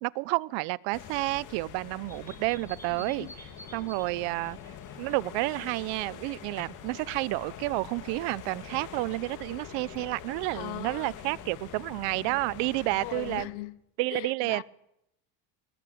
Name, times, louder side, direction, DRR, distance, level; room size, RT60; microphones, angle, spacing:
voice 1, 0.0-3.3 3.7-4.6 5.0-13.5 14.0-14.6, right 24 dB, 80° right, 0.9 m, -30 dB
sound 1, 0.9-13.5, left 9 dB, 45° left, 2.7 m, -45 dB
sound 2, 2.1-7.1, left 1 dB, 5° left, 3.5 m, -53 dB
voice 2, 2.9-3.4 3.6-3.8 4.1-4.2 10.5-11.3 12.1-12.4 12.9-13.8 14.1-14.6, left 18 dB, 70° left, 1.3 m, -40 dB
27.5 x 20.5 x 8.7 m
cardioid pair, 175°, 42 cm